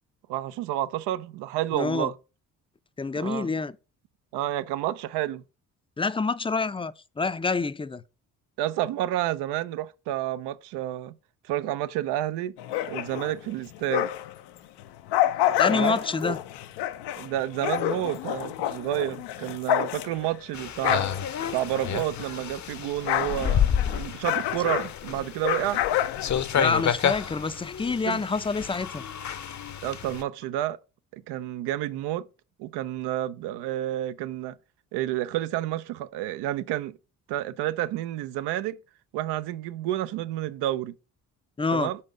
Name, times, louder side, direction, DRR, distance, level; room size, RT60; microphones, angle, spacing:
voice 1, 0.3-2.1 3.1-3.5 4.3-5.4 8.6-11.1 11.4-12.5 12.9-14.1 15.7-16.0 16.3-16.4 17.2-21.1 21.5-25.8 28.0-28.3 29.8-30.8 31.1-32.3 32.6-34.6 34.9-37.0 37.3-38.8 39.1-41.0 41.7-42.0, right 13 dB, 80° right, 0.6 m, -30 dB
voice 2, 1.7-2.1 3.0-3.7 6.0-8.0 15.6-16.4 26.5-29.0 41.6-41.9, left 4 dB, 15° left, 0.5 m, -27 dB
sound 1, 12.6-14.4 14.8-22.4 22.7-26.9, left 13 dB, 80° left, 0.6 m, -29 dB
sound 2, 20.5-30.2, left 8 dB, 45° left, 0.8 m, -30 dB
5.3 x 4.3 x 4.9 m
hypercardioid pair, 50°, 40 cm